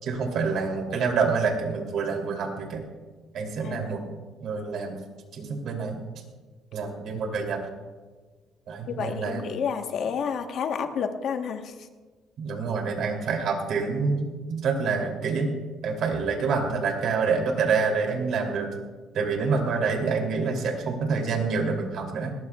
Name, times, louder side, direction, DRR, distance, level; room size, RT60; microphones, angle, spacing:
voice 1, 0.0-2.8 3.3-4.0 4.4-5.0 5.3-6.0 6.7-7.6 8.7-9.5 12.4-15.5 15.8-18.7 19.1-22.3, right 4 dB, 65° right, 1 dB, 3.0 m, -27 dB
voice 2, 3.6-4.0 8.9-11.7, left 6 dB, 60° left, 6 dB, 1.2 m, -30 dB
20.5 x 18.5 x 2.4 m, 1.4 s
cardioid pair, 115°, 0 cm